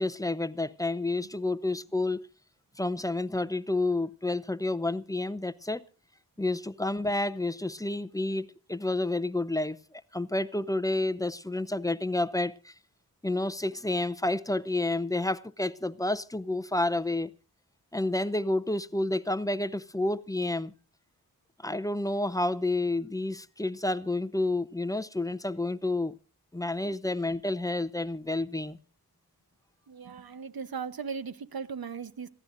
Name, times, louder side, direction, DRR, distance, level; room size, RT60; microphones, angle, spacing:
voice 1, 0.0-2.3 2.8-5.8 6.4-12.7 13.2-17.3 17.9-20.7 21.6-26.1 26.5-28.8, left 2 dB, 10° left, 0.6 m, -30 dB
voice 2, 29.9-32.3, right 6 dB, 70° right, 1.1 m, -38 dB
26.0 x 15.0 x 2.6 m
wide cardioid pair, 75°, 38 cm